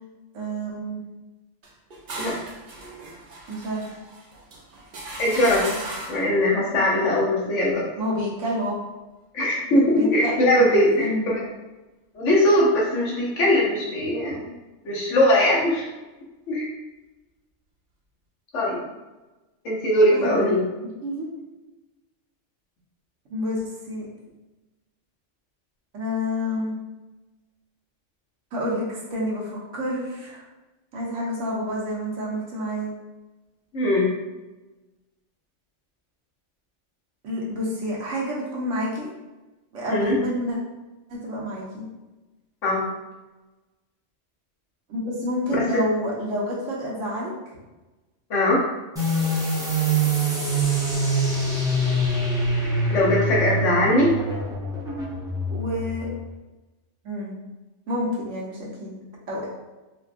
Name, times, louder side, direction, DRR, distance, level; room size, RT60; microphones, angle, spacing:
voice 1, 0.3-1.0 3.5-3.9 8.0-8.8 9.9-11.3 20.1-20.6 21.0-21.3 23.3-24.1 25.9-26.7 28.5-30.4 30.9-32.9 37.2-39.1 39.7-40.6 41.1-41.8 44.9-47.6 55.5-56.1 57.0-57.3 57.9-58.9 59.3-59.5, left 1 dB, 85° right, -4 dB, 1.2 m, -29 dB
sound 1, 1.6-6.3, right 2 dB, 50° right, 0.7 m, -37 dB
voice 2, 5.2-5.7 6.1-7.9 9.3-11.4 12.1-14.5 14.8-15.9 16.5-16.7 18.5-18.8 19.6-20.6 33.7-34.1 39.9-40.1 42.6-42.8 48.3-48.6 52.9-54.1, left 1 dB, 85° left, -4 dB, 1.3 m, -20 dB
sound 2, 49.0-56.2, right 1 dB, 5° right, 0.5 m, -24 dB
4.2 x 2.2 x 2.5 m, 1.1 s
omnidirectional pair, 1.2 m